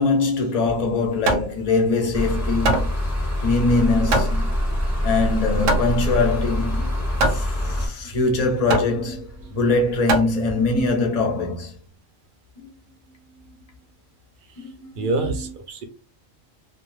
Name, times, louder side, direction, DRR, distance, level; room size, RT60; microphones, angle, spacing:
voice 1, 0.0-2.9 3.4-4.5 5.0-7.0 7.3-11.7 12.6-12.7 13.3-13.6 14.6-15.5, left 3 dB, 45° left, 0.5 m, -23 dB
Hammer, 0.7-10.9, right 2 dB, 80° right, 1.0 m, -26 dB
sound 1, 2.1-7.9, left 1 dB, 15° left, 0.9 m, -24 dB
voice 2, 15.0-15.8, right 3 dB, 55° right, 0.6 m, -26 dB
2.3 x 2.3 x 3.1 m
omnidirectional pair, 1.3 m